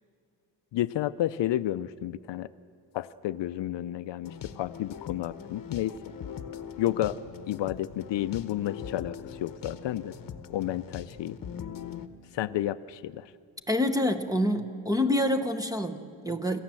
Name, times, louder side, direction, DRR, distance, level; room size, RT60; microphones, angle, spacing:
voice 1, 0.7-2.5 2.9-6.0 6.8-7.2 7.5-10.1 10.5-11.4 12.3-13.3, left 13 dB, 75° left, 13 dB, 0.6 m, -31 dB
sound 1, 4.2-12.1, left 7 dB, 50° left, 1.0 m, -41 dB
voice 2, 13.7-16.6, left 1 dB, 10° right, 6 dB, 0.8 m, -27 dB
27.0 x 14.5 x 7.6 m, 2.5 s
wide cardioid pair, 150°, 44 cm